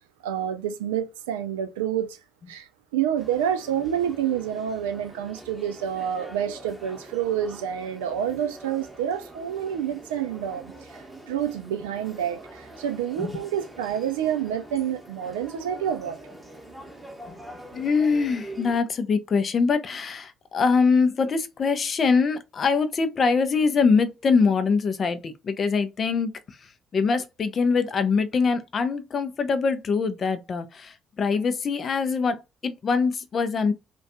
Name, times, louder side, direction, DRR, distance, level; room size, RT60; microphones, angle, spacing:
voice 1, 0.2-2.2 2.5-16.2, right 9 dB, 75° right, 0.3 m, -28 dB
sound 1, 3.2-18.8, right 1 dB, 10° right, 0.9 m, -44 dB
voice 2, 17.7-26.6 26.9-33.7, left 5 dB, 45° left, 0.4 m, -23 dB
2.4 x 2.2 x 2.5 m
figure-of-eight pair, 45°, 0 cm